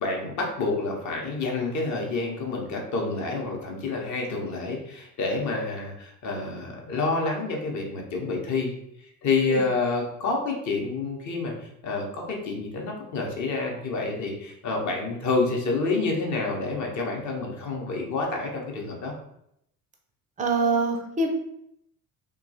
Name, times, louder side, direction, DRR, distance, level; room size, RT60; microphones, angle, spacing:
voice 1, 0.0-8.7 9.2-11.5 11.8-19.1, left 3 dB, 40° left, 0 dB, 0.8 m, -28 dB
voice 2, 20.4-21.3, right 3 dB, 20° right, 3 dB, 0.5 m, -24 dB
2.9 x 2.3 x 2.7 m, 0.76 s
figure-of-eight pair, 55°, 45 cm